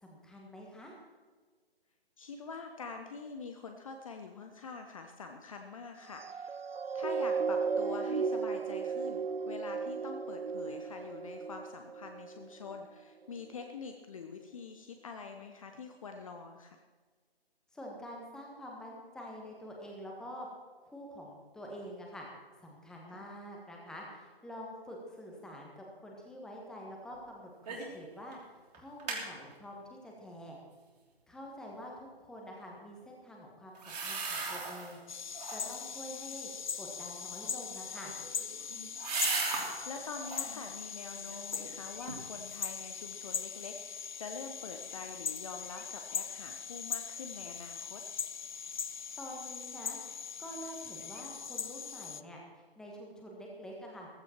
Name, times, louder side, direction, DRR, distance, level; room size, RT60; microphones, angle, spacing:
voice 1, 0.0-0.9 17.7-20.5 20.8-22.3 22.6-28.4 28.7-30.6 31.3-35.0 35.5-36.5 36.8-38.1 49.2-50.0 50.4-54.1, equal, ahead, -1 dB, 1.5 m, -47 dB
voice 2, 2.2-6.6 6.9-16.8 23.1-23.2 35.7-35.8 39.9-48.0, left 4 dB, 35° left, 5 dB, 0.9 m, -45 dB
sound 1, 6.1-12.8 13.4-13.5, right 5 dB, 70° right, 0.7 m, -35 dB
sound 2, 27.7-28.0 28.3-28.4 28.7-29.2 33.7-35.0 35.3-35.9 37.8-39.8 40.2-40.6 41.1-41.7 42.1-42.2, right 4 dB, 40° right, 3.3 m, -37 dB
sound 3, 35.1-52.2, left 6 dB, 50° left, 0.5 m, -40 dB
15.0 x 14.5 x 4.5 m, 1.5 s
figure-of-eight pair, 140°, 31 cm